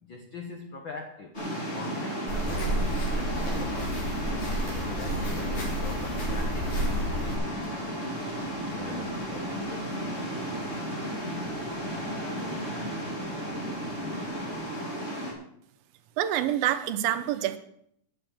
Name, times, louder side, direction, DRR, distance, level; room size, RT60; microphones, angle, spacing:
voice 1, 0.0-1.4 1.7-4.3 4.8-7.5 8.6-10.1, left 3 dB, 80° left, 4 dB, 1.1 m, -42 dB
sound 1, 1.3-15.3, equal, 20° left, 2.7 m, -34 dB
sound 2, 2.3-7.4, right 1 dB, 55° left, 4.9 m, -31 dB
sound 3, 4.0-14.7, right 2 dB, 5° left, 2.7 m, -49 dB
voice 2, 16.2-17.6, right 12 dB, 90° right, 10 dB, 2.7 m, -26 dB
9.6 x 7.5 x 8.9 m, 0.71 s
omnidirectional pair, 4.0 m